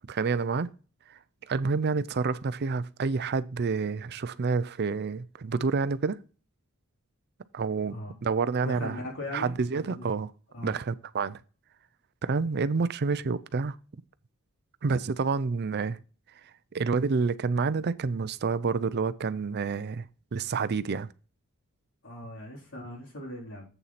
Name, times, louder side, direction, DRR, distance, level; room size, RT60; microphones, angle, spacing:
voice 1, 0.1-0.7 1.1-1.2 1.5-6.2 7.5-9.0 9.3-10.3 10.6-11.4 12.2-13.8 14.8-16.0 16.7-20.1 20.3-21.1, right 4 dB, 50° right, 0.5 m, -28 dB
voice 2, 8.6-9.5 9.9-10.1 10.5-10.8 22.0-23.6, left 1 dB, 60° left, 3.8 m, -39 dB
7.9 x 7.1 x 4.1 m
head